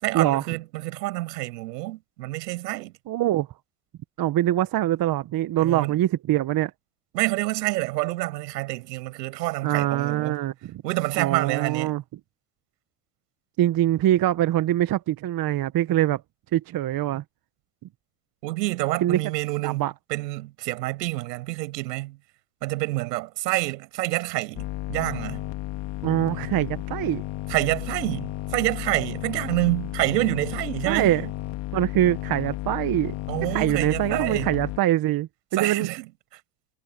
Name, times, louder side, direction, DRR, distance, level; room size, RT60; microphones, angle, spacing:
voice 1, 0.0-2.9 5.6-6.0 7.1-10.4 10.8-12.0 18.4-22.2 22.6-25.4 27.5-31.2 33.3-34.5 35.5-36.4, right 20 dB, 85° right, 6.2 m, -28 dB
voice 2, 3.1-3.5 4.2-6.7 9.6-10.8 11.2-12.0 13.6-16.2 16.5-17.2 19.0-19.2 19.6-19.9 26.0-27.2 30.9-31.2 31.7-33.1 33.5-35.9, right 13 dB, 45° right, 1.1 m, -23 dB
sound 1, 24.6-34.8, left 16 dB, 60° left, 2.4 m, -33 dB
supercardioid pair, 90°, 48 cm